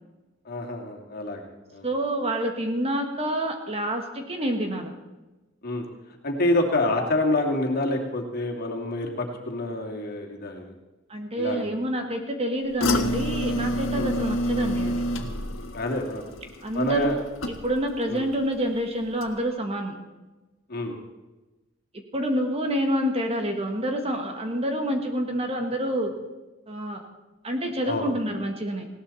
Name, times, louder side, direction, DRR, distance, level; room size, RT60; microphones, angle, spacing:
voice 1, 0.4-1.4 1.7-1.9 5.6-5.8 6.2-10.7 11.4-11.7 13.9-14.2 15.7-16.2 16.7-17.1 18.1-18.3 20.7-21.0 27.8-28.1, left 2 dB, 50° left, 1 dB, 2.5 m, -27 dB
voice 2, 1.8-4.9 11.1-15.1 16.6-20.0 22.1-26.1 26.7-27.0 27.4-28.9, right 1 dB, 30° right, 4 dB, 1.8 m, -28 dB
sound 1, 12.8-18.0 18.3-18.8 19.2-19.3, equal, 90° left, 1.6 m, -28 dB
19.5 x 17.0 x 4.2 m, 1.1 s
head